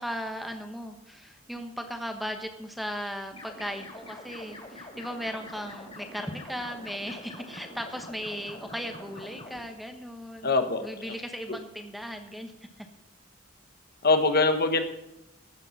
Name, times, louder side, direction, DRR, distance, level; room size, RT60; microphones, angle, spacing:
voice 1, 0.0-10.5 10.8-12.5 12.8-12.9, equal, ahead, 5 dB, 1.1 m, -37 dB
sound 1, 3.3-9.6, left 1 dB, 30° left, 3.2 m, -45 dB
voice 2, 10.4-11.1 14.0-14.8, left 3 dB, 50° left, 7 dB, 1.2 m, -23 dB
14.0 x 6.8 x 7.2 m, 0.89 s
head